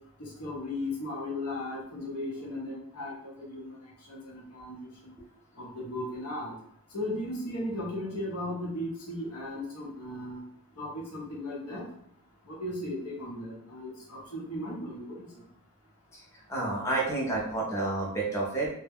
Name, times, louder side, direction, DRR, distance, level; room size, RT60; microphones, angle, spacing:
voice 1, 0.2-5.1 5.6-6.5 6.9-10.4 10.8-11.9 12.5-15.4, left 1 dB, 80° left, -3 dB, 0.9 m, -36 dB
voice 2, 16.5-18.8, right 2 dB, 15° left, -4 dB, 0.5 m, -30 dB
2.2 x 2.1 x 3.4 m, 0.69 s
head